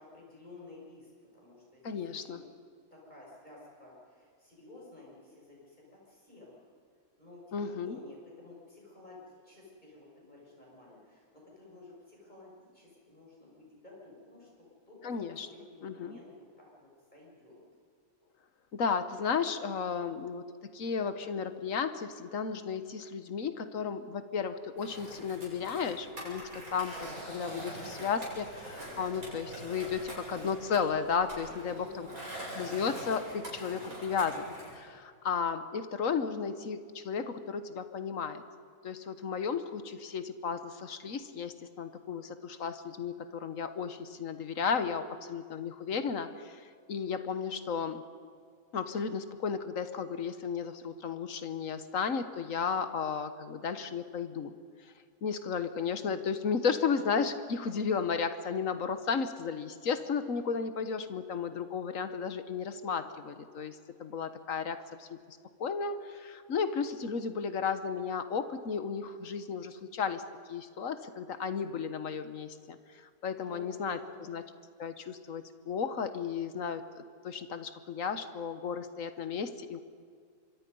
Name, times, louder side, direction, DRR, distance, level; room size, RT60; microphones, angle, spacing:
voice 1, 0.0-2.4 2.9-6.7 7.2-15.1 15.5-17.6 31.6-32.5 73.4-74.4, left 2 dB, 30° left, -4 dB, 6.7 m, -53 dB
voice 2, 1.8-2.4 7.5-8.0 15.0-15.5 15.8-16.2 18.7-20.4 20.7-32.1 32.6-38.4 38.8-48.0 48.7-54.5 55.2-70.2 70.5-74.4 74.8-76.8 77.2-79.8, left 6 dB, 60° left, 11 dB, 1.5 m, -34 dB
Skateboard, 24.8-34.8, right 1 dB, 65° right, 7.1 m, -44 dB
26.0 x 23.0 x 5.4 m, 2.1 s
omnidirectional pair, 1.6 m